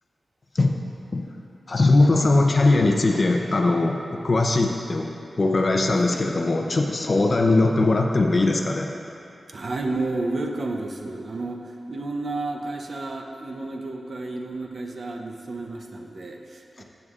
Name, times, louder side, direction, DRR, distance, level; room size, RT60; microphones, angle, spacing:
voice 1, 1.7-5.1 5.4-8.9 16.8-16.9, left 2 dB, 40° left, 2 dB, 0.6 m, -20 dB
voice 2, 9.5-16.8, right 2 dB, 45° right, 2 dB, 0.7 m, -31 dB
12.5 x 8.0 x 2.4 m, 2.7 s
wide cardioid pair, 165°, 0 cm